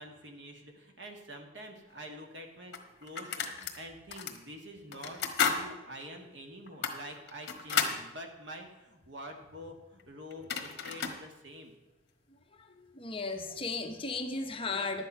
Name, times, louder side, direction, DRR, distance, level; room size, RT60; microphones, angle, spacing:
voice 1, 0.0-5.2 5.5-11.8, equal, 65° right, 3 dB, 1.7 m, -47 dB
sound 1, 2.0-2.1 2.7-3.8 4.1-4.4 4.9-5.6 6.0-6.1 6.7-8.0 10.0-10.1 10.3-11.2, left 6 dB, 55° left, 1.3 m, -32 dB
voice 2, 12.9-15.1, left 3 dB, 30° left, 5 dB, 0.9 m, -35 dB
11.0 x 8.6 x 5.5 m, 1.1 s
head